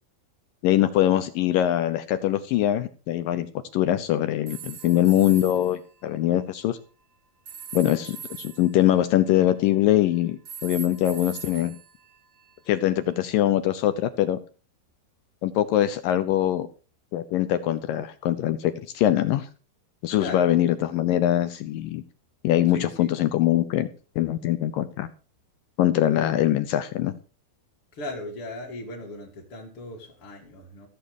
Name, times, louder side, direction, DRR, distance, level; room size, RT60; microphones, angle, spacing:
voice 1, 0.6-3.5 3.7-6.8 7.7-11.7 12.7-14.4 15.4-16.7 17.1-19.5 20.0-22.0 22.4-23.9 24.2-25.1 25.8-27.1, left 13 dB, 75° left, 2.1 m, -23 dB
sound 1, 4.5-5.8 7.5-9.9 10.4-12.8, right 8 dB, 60° right, 1.0 m, -42 dB
voice 2, 20.2-20.6 22.7-23.1 27.9-30.9, left 2 dB, 40° left, 2.8 m, -37 dB
15.5 x 7.8 x 6.5 m
omnidirectional pair, 4.7 m